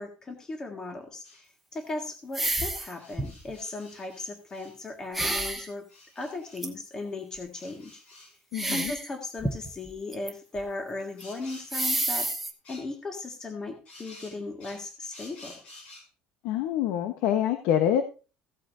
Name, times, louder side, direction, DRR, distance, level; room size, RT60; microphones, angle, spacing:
voice 1, 0.0-5.9 6.1-8.0 8.7-12.3 12.7-15.6, left 2 dB, 20° left, 3 dB, 1.7 m, -37 dB
sound 1, 1.2-1.5 2.7-4.8 5.9-6.6 7.5-8.4 11.2-12.4 12.6-12.9 13.9-16.1, left 2 dB, 45° left, 5.0 m, -50 dB
sound 2, 2.3-2.9 3.2-3.5 5.1-5.7 6.6-6.7 8.5-9.1 9.4-10.3 10.6-10.7 11.2-11.3 11.7-12.5, right 2 dB, 5° right, 1.1 m, -29 dB
voice 2, 8.5-8.9 16.4-18.0, left 10 dB, 85° left, 8 dB, 1.0 m, -26 dB
16.0 x 8.2 x 2.6 m, 0.33 s
cardioid pair, 160°, 3 cm